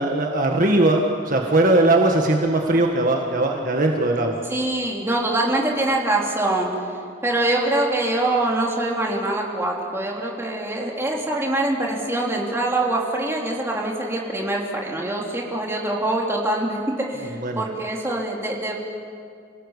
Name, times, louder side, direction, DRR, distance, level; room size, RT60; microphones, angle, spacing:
voice 1, 0.0-4.4 17.4-17.6, right 2 dB, 45° right, 1 dB, 1.7 m, -19 dB
voice 2, 4.5-6.7 7.2-18.7, right 2 dB, 15° right, -2 dB, 3.3 m, -24 dB
27.5 x 18.5 x 8.3 m, 2.3 s
head